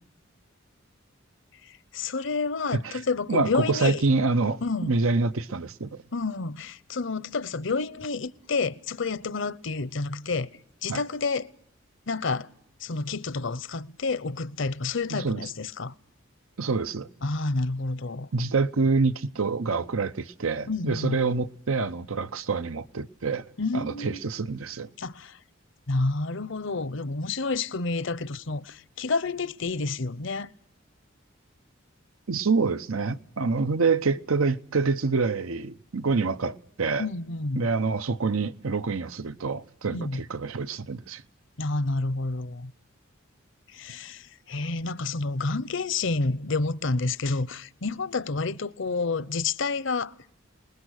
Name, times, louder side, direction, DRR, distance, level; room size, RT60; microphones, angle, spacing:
voice 1, 1.9-4.0 4.6-5.0 6.1-10.5 10.8-11.5 12.1-12.5 12.8-15.9 17.2-18.3 20.7-21.2 23.6-24.2 25.0-25.4 25.9-30.5 37.0-37.7 39.9-40.2 41.6-42.7 43.7-50.1, left 3 dB, 65° left, 0.9 m, -29 dB
voice 2, 3.3-6.0 10.9-11.0 15.1-15.5 16.6-17.1 18.3-23.5 23.7-24.9 32.3-37.1 37.5-41.2, right 4 dB, 85° right, 0.9 m, -26 dB
28.5 x 20.5 x 6.6 m
head